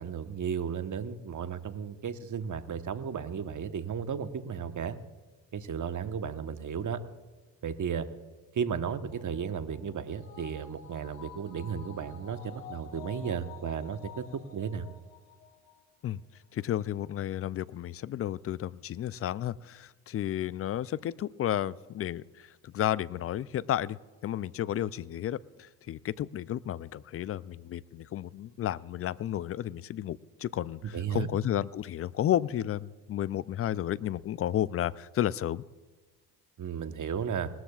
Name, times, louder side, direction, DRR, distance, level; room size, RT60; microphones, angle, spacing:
voice 1, 0.0-5.0 5.5-7.0 7.6-8.1 8.5-14.9 30.9-31.3 36.6-37.5, right 7 dB, 35° right, 10 dB, 1.2 m, -34 dB
sound 1, 9.1-15.8 16.1-16.2, left 7 dB, 85° left, 1.5 m, -50 dB
voice 2, 16.5-24.0 24.2-35.6, left 11 dB, 30° left, 20 dB, 0.4 m, -32 dB
20.0 x 13.5 x 2.4 m, 1.3 s
hypercardioid pair, 60°, 49 cm